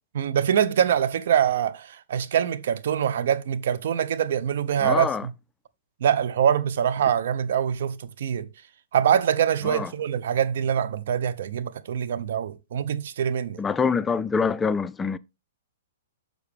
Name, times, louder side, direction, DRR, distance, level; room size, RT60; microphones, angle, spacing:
voice 1, 0.1-5.3 6.0-8.5 8.9-13.6, right 9 dB, 65° right, 0.7 m, -24 dB
voice 2, 4.8-5.3 9.6-9.9 13.6-15.2, left 5 dB, 15° left, 0.3 m, -25 dB
6.8 x 6.3 x 3.5 m
hypercardioid pair, 125°, 0 cm